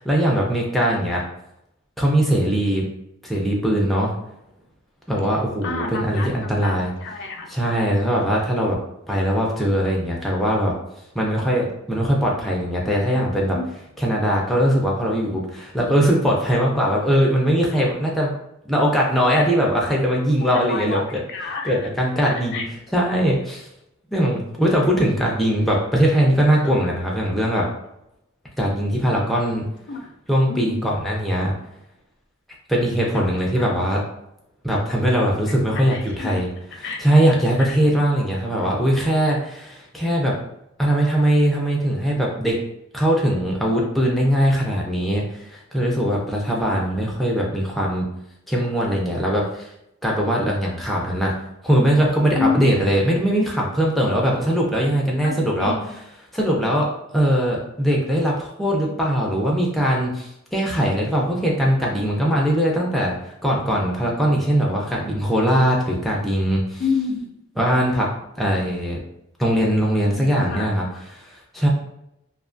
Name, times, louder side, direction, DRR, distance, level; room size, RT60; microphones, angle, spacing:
voice 1, 0.0-1.2 2.0-2.9 3.2-4.1 5.1-6.9 7.5-8.8 9.1-10.7 11.1-13.6 14.0-18.3 18.6-21.0 21.6-22.5 22.9-23.7 24.1-27.7 28.6-29.6 30.3-31.5 32.7-34.0 34.6-36.5 37.0-40.4 40.8-42.6 42.9-48.1 48.5-49.7 50.0-51.3 51.6-55.7 56.3-66.8 67.6-68.1 68.4-69.0 69.4-70.8 71.2-71.7, equal, ahead, -3 dB, 0.4 m, -21 dB
voice 2, 5.6-6.7 7.0-7.5 13.5-13.7 14.2-14.3 20.5-21.9 22.2-22.6 26.7-26.9 29.9-30.1 30.5-31.0 33.1-33.9 35.4-36.4 36.8-37.1 37.6-37.9 52.4-52.8 54.8-54.9 55.2-55.9 66.8-67.3 70.2-70.9, left 4 dB, 60° left, 2 dB, 0.4 m, -30 dB
2.4 x 2.3 x 2.4 m, 0.81 s
head